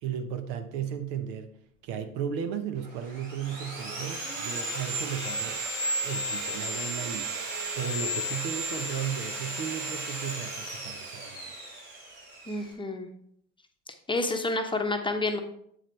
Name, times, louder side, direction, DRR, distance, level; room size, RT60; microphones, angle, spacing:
voice 1, 0.0-1.5 1.8-5.6 6.0-7.5 7.8-11.5, right 8 dB, 60° right, 9 dB, 0.9 m, -35 dB
Sawing, 2.8-12.7, right 1 dB, 75° right, 2.4 m, -34 dB
sound 1, 3.6-7.9 8.3-8.4 8.7-8.8 9.0-9.2, right 4 dB, 40° right, 2.5 m, -48 dB
voice 2, 12.5-13.1 14.1-15.4, left 2 dB, 10° left, 4 dB, 1.0 m, -29 dB
7.9 x 7.5 x 3.2 m, 0.68 s
figure-of-eight pair, 65°, 38 cm